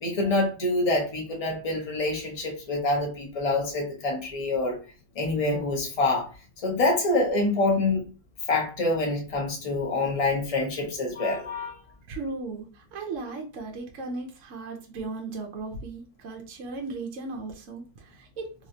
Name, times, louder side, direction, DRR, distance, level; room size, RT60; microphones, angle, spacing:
voice 1, 0.0-4.8 5.1-6.3 6.6-8.0 8.5-11.7, left 2 dB, 25° left, 0 dB, 0.9 m, -26 dB
voice 2, 12.1-18.5, right 3 dB, 60° right, 2 dB, 0.9 m, -36 dB
3.2 x 3.0 x 2.7 m, 0.35 s
omnidirectional pair, 1.8 m